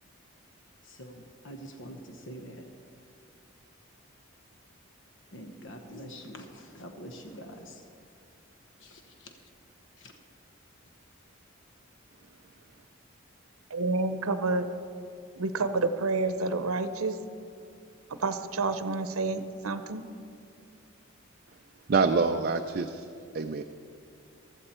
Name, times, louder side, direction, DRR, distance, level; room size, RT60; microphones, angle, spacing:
voice 1, 0.8-2.6 5.3-7.8 8.8-9.3 10.0-10.1, equal, 60° left, 4 dB, 1.0 m, -45 dB
voice 2, 13.7-14.7 15.4-17.2 18.2-20.0, right 3 dB, 85° right, 11 dB, 0.7 m, -29 dB
voice 3, 21.9-23.0 23.3-23.6, right 4 dB, 45° right, 6 dB, 0.4 m, -26 dB
14.5 x 13.5 x 4.3 m, 2.4 s
head